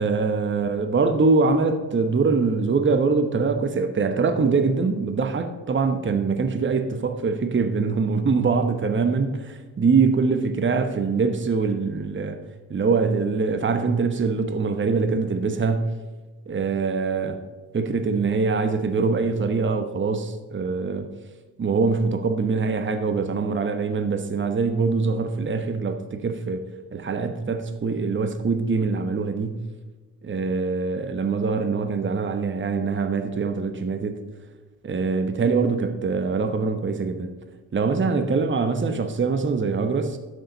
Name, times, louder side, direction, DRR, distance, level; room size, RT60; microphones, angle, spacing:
voice 1, 0.0-12.4 12.7-16.0 16.5-17.4 17.7-21.1 21.6-29.6 30.2-34.2 34.8-37.3 37.7-40.2, right 4 dB, 25° right, 1.1 m, -23 dB
12.5 x 6.5 x 4.0 m
hypercardioid pair, 40°, 43 cm